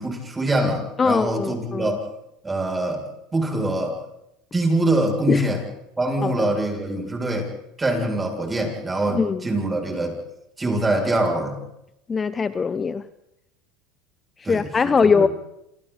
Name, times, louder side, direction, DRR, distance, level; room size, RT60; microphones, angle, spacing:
voice 1, 0.0-2.0 2.4-3.0 3.3-4.0 4.5-5.6 6.0-7.5 7.8-10.2 10.6-11.6 14.4-15.3, right 1 dB, 15° right, 2 dB, 7.3 m, -24 dB
voice 2, 1.0-1.9 5.3-5.5 6.2-6.5 9.1-9.4 12.1-13.0 14.5-15.3, left 5 dB, 25° left, 14 dB, 0.9 m, -21 dB
28.0 x 27.5 x 4.3 m, 0.85 s
hypercardioid pair, 95°, 0 cm